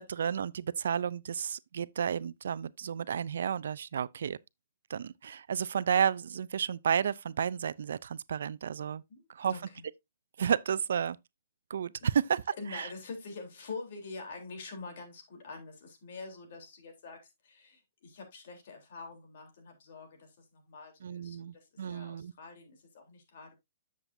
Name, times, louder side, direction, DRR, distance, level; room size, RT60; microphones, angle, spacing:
voice 1, 0.0-4.4 4.9-9.0 9.3-9.5 10.4-11.2 11.7-12.4 12.7-12.9 21.0-22.3, right 8 dB, 75° right, 0.4 m, -32 dB
voice 2, 9.1-9.8 12.0-12.1 12.6-23.5, left 4 dB, 55° left, 3.5 m, -46 dB
9.1 x 7.4 x 2.6 m
hypercardioid pair, 160°, 0 cm